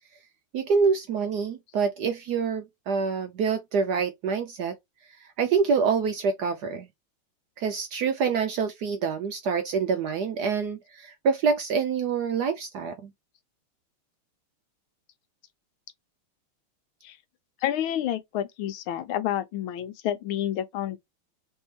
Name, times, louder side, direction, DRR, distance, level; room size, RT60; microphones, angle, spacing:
voice 1, 0.5-4.8 5.2-6.9 7.6-13.1, right 5 dB, 70° right, 1.0 m, -26 dB
voice 2, 17.6-21.0, left 11 dB, 80° left, 1.5 m, -29 dB
3.6 x 3.5 x 2.8 m
omnidirectional pair, 2.3 m